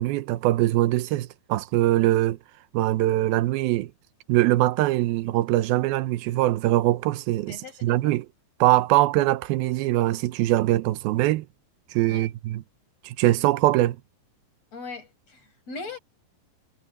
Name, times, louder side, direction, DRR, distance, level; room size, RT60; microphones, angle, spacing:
voice 1, 0.0-2.4 2.7-3.9 4.3-8.3 8.6-11.5 11.9-12.6 13.0-14.0, right 16 dB, 90° right, 2.6 m, -22 dB
voice 2, 7.5-8.2 12.1-12.3 14.7-16.0, left 3 dB, 45° left, 7.4 m, -40 dB
omnidirectional pair, 4.2 m